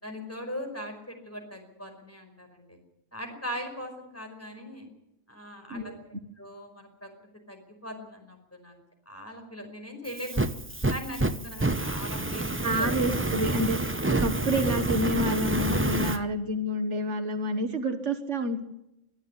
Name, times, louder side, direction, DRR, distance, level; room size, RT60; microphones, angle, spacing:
voice 1, 0.0-2.8 3.1-4.9 5.3-5.9 6.4-10.5 10.9-12.9 16.0-16.2 17.8-17.9, equal, 10° left, 3 dB, 5.0 m, -40 dB
Fire, 10.1-16.2, right 2 dB, 15° right, 0.7 m, -28 dB
voice 2, 12.6-18.6, equal, 70° right, 7 dB, 1.8 m, -28 dB
23.5 x 13.0 x 9.9 m, 0.86 s
omnidirectional pair, 1.3 m